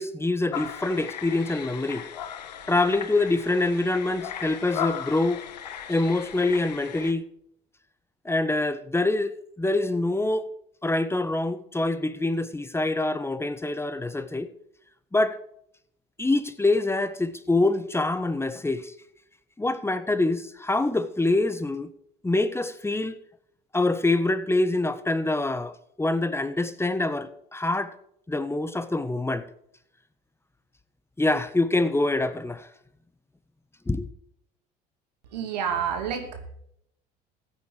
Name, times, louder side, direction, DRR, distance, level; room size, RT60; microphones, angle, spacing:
voice 1, 0.0-2.0 2.7-5.4 5.9-7.2 8.2-10.5 10.8-14.5 15.1-15.4 16.2-18.9 19.6-21.9 22.2-23.2 23.7-27.9 28.3-29.5 31.2-32.7 33.9-34.1, left 2 dB, 10° left, 1.3 m, -25 dB
sound 1, 0.5-7.1, left 9 dB, 90° left, 1.3 m, -37 dB
voice 2, 35.3-36.5, right 7 dB, 85° right, 2.7 m, -29 dB
15.5 x 8.9 x 5.0 m
hypercardioid pair, 70°, 21 cm